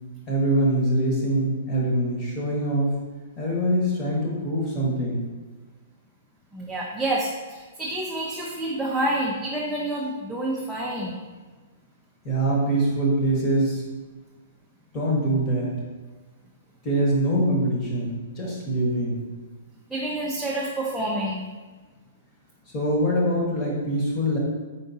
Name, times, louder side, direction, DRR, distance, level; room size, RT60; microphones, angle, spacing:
voice 1, 0.3-3.0 3.4-5.2 12.2-13.8 14.9-15.8 16.8-19.2 22.7-24.4, right 1 dB, 20° left, -4 dB, 1.1 m, -24 dB
voice 2, 6.5-11.2 19.9-21.4, right 1 dB, ahead, -6 dB, 0.4 m, -28 dB
4.5 x 3.7 x 2.7 m, 1.3 s
hypercardioid pair, 165°, 0 cm